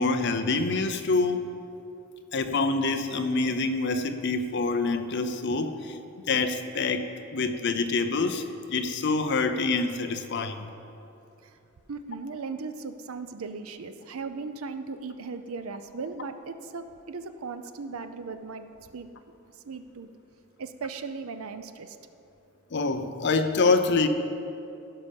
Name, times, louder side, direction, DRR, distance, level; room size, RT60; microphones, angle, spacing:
voice 1, 0.0-1.4 2.3-6.0 6.3-10.7 22.7-24.1, left 3 dB, 55° left, 8 dB, 0.6 m, -26 dB
voice 2, 11.9-18.7 18.9-19.1 19.6-20.1 20.6-22.0, right 4 dB, 75° right, 10 dB, 0.6 m, -37 dB
16.0 x 5.5 x 5.3 m, 2.8 s
head